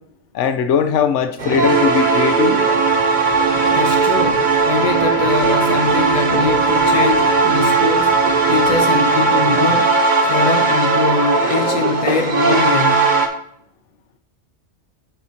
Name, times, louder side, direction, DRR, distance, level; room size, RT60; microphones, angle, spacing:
voice 1, 0.3-2.6, left 7 dB, 90° left, 1.0 m, -19 dB
sound 1, 1.4-13.3, right 4 dB, 45° right, 1.0 m, -17 dB
voice 2, 3.7-8.2 8.5-10.0 10.3-13.1, left 5 dB, 50° left, 0.5 m, -22 dB
8.8 x 6.2 x 2.9 m
omnidirectional pair, 1.2 m